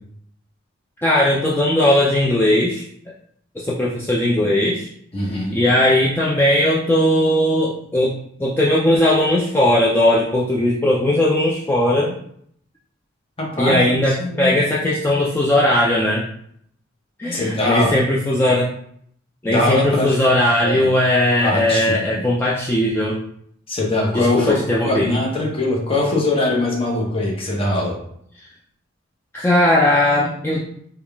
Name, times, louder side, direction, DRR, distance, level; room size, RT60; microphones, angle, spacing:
voice 1, 1.0-2.8 3.6-4.9 5.5-12.2 13.6-16.2 17.2-18.7 19.4-23.2 24.1-25.1 29.3-30.7, left 1 dB, 10° left, -5 dB, 0.3 m, -18 dB
voice 2, 5.1-5.6 13.4-14.5 17.3-17.9 19.4-20.2 20.6-20.9 21.4-21.9 23.7-24.6 24.8-27.9, left 2 dB, 30° left, -3 dB, 0.9 m, -21 dB
3.6 x 2.3 x 3.4 m, 0.67 s
head